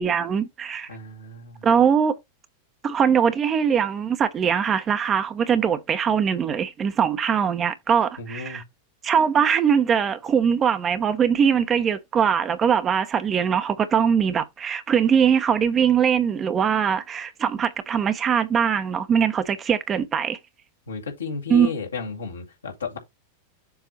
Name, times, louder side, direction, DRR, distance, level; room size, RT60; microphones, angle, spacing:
voice 1, 0.0-0.9 1.6-2.2 2.8-8.6 9.0-20.4 21.5-21.7, right 7 dB, 25° right, 0.9 m, -21 dB
voice 2, 0.9-1.7 8.2-8.6 20.9-23.0, left 5 dB, 75° left, 2.3 m, -33 dB
7.2 x 3.7 x 4.4 m
figure-of-eight pair, 90°, 0 cm